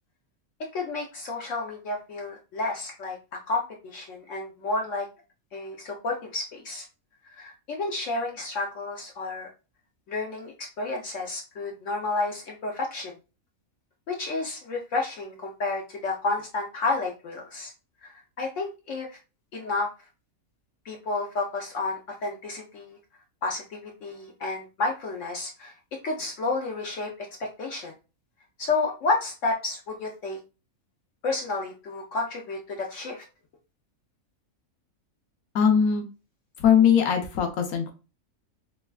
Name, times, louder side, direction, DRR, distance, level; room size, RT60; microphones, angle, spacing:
voice 1, 0.7-3.2 3.5-5.1 5.5-6.9 7.4-9.5 10.1-13.1 14.1-17.7 18.0-19.1 19.5-19.9 20.8-23.0 23.4-25.7 26.0-27.1 27.4-27.9 28.6-30.4 31.2-33.2, left 3 dB, 65° left, 0 dB, 0.9 m, -31 dB
voice 2, 35.5-36.0 36.6-37.9, left 8 dB, 90° left, 4 dB, 1.2 m, -20 dB
3.3 x 3.2 x 2.2 m, 0.31 s
omnidirectional pair, 1.5 m